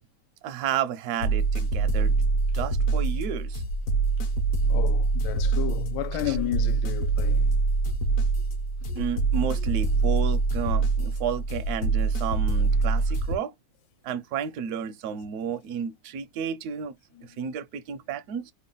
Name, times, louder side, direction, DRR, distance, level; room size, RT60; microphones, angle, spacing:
voice 1, 0.4-2.1 2.5-3.6 6.3-6.4 8.9-13.5 14.0-16.9 17.2-18.5, right 8 dB, 75° right, 0.9 m, -32 dB
sound 1, 1.2-13.4, right 3 dB, 60° left, 0.9 m, -25 dB
voice 2, 4.7-7.4 8.9-9.1 17.1-17.3, left 13 dB, 75° left, 1.3 m, -32 dB
3.2 x 2.2 x 3.7 m
omnidirectional pair, 2.2 m